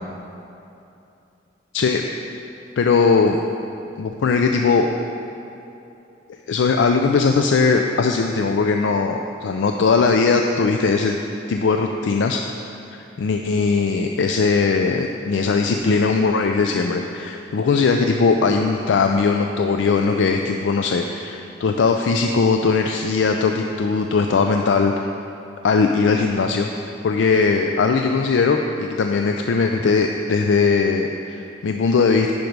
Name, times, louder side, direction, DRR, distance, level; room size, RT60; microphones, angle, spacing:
voice 1, 2.8-3.4 4.0-4.9 6.3-11.2 11.5-12.4 12.9-24.9 25.6-26.7 27.0-32.3, left 4 dB, 70° left, 4 dB, 0.4 m, -19 dB
10.0 x 5.3 x 4.6 m, 2.7 s
head